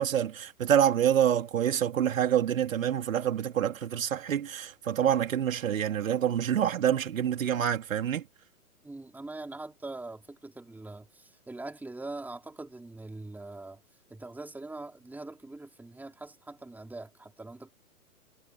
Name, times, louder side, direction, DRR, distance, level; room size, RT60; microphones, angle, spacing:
voice 1, 0.0-8.2, right 9 dB, 60° right, 3.4 m, -27 dB
voice 2, 8.8-13.8 14.1-17.7, right 2 dB, 5° right, 3.7 m, -42 dB
figure-of-eight pair, 125°, 45 cm